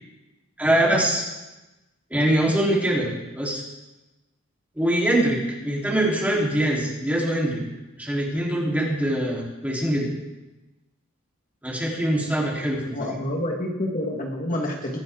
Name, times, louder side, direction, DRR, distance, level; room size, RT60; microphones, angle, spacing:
voice 1, 0.6-1.2 2.1-3.6 4.7-7.6 8.0-10.1 11.6-13.1, right 1 dB, 5° right, -4 dB, 3.6 m, -23 dB
voice 2, 12.9-15.0, left 1 dB, 40° left, 1 dB, 1.6 m, -28 dB
23.5 x 9.5 x 3.8 m, 1.0 s
head